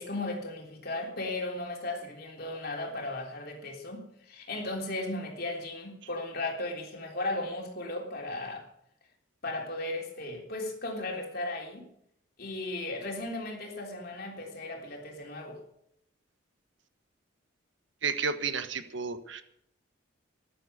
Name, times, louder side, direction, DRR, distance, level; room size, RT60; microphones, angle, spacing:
voice 1, 0.0-8.7 9.4-11.8 12.4-15.6, left 2 dB, 50° left, 1 dB, 3.5 m, -36 dB
voice 2, 18.0-19.4, right 5 dB, 70° right, 10 dB, 1.2 m, -32 dB
14.0 x 11.5 x 6.7 m, 0.73 s
head